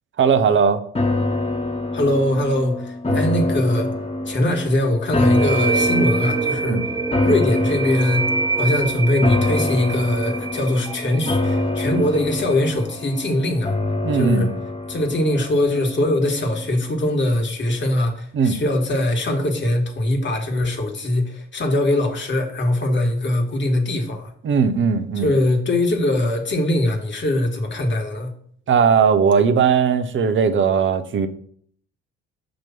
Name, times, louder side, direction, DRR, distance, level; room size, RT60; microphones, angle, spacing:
voice 1, 0.2-0.8 3.1-3.2 6.6-6.8 14.0-14.5 18.3-18.6 24.4-25.3 28.7-31.3, right 6 dB, 35° right, 0.8 m, -18 dB
sound 1, 0.9-16.2 16.6-16.7, left 2 dB, 15° left, 1.1 m, -25 dB
voice 2, 1.9-3.9 4.2-6.8 7.2-8.3 8.6-13.7 14.1-14.5 14.9-24.3 25.2-28.3, left 1 dB, 30° left, 1.6 m, -21 dB
sound 2, 5.2-12.6, right 4 dB, 10° right, 0.3 m, -25 dB
7.3 x 3.0 x 5.8 m
figure-of-eight pair, 45°, 35 cm